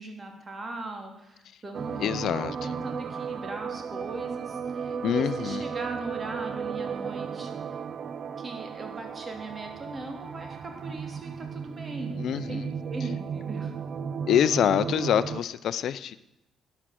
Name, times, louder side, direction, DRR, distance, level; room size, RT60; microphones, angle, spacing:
voice 1, 0.0-2.2 2.6-7.5 8.4-13.7, right 2 dB, 35° right, 4 dB, 3.0 m, -39 dB
sound 1, 1.7-15.4, right 6 dB, 55° right, 0.6 m, -35 dB
voice 2, 2.0-2.7 5.0-5.6 12.2-12.7 14.3-16.2, left 10 dB, 70° left, 15 dB, 0.5 m, -26 dB
13.0 x 9.8 x 7.6 m, 0.88 s
cardioid pair, 90°, 0 cm